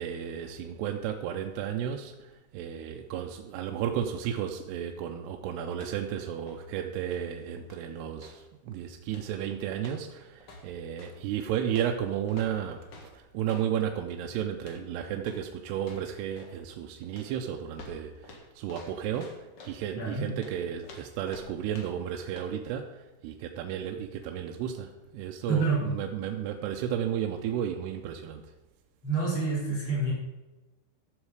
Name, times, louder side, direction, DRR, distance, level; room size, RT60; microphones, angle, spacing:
voice 1, 0.0-28.5, right 9 dB, 85° right, 3 dB, 2.7 m, -33 dB
sound 1, 5.7-6.1 6.4-8.5 9.1-9.4 9.8-11.2 11.7-13.7 14.6-14.9 15.2-15.5 15.8-16.6 17.1-19.8 20.4-22.1 22.4-22.5, left 2 dB, 55° left, 1.6 m, -50 dB
voice 2, 20.0-20.3 25.5-25.9 29.0-30.1, right 4 dB, 30° left, -6 dB, 5.0 m, -27 dB
13.5 x 7.3 x 4.7 m, 1.1 s
omnidirectional pair, 4.8 m